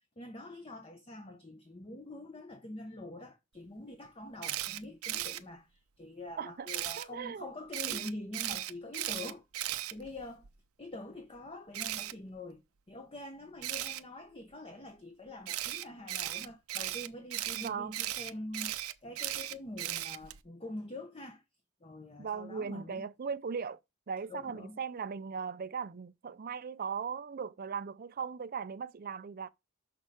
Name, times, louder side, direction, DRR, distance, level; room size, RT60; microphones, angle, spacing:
voice 1, 0.2-10.5 10.8-12.6 12.9-21.4 21.8-23.1 24.3-24.8, left 1 dB, 25° left, 0.9 m, -45 dB
Camera, 4.4-5.4 6.7-7.1 7.7-10.5 11.7-12.1 13.6-14.0 15.5-20.4, right 14 dB, 80° right, 0.7 m, -36 dB
voice 2, 6.4-6.7 7.0-7.5 17.5-17.9 22.2-23.8 24.1-29.5, right 6 dB, 40° right, 0.4 m, -38 dB
6.7 x 6.3 x 4.9 m
head